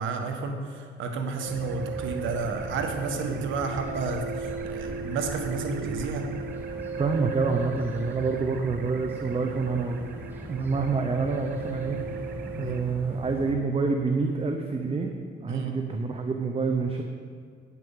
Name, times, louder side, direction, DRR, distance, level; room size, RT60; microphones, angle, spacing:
voice 1, 0.0-6.3 12.5-12.8 15.5-15.8, right 4 dB, 80° right, 4 dB, 1.3 m, -31 dB
sound 1, 1.4-12.8, right 6 dB, 55° right, 0.9 m, -37 dB
sound 2, 1.5-13.5, left 1 dB, 10° right, 1.8 m, -40 dB
voice 2, 7.0-10.1 10.5-12.0 12.6-15.1 15.4-17.0, right 4 dB, 30° right, 4 dB, 0.8 m, -27 dB
9.4 x 6.1 x 7.2 m, 2.1 s
cardioid pair, 90°, 20 cm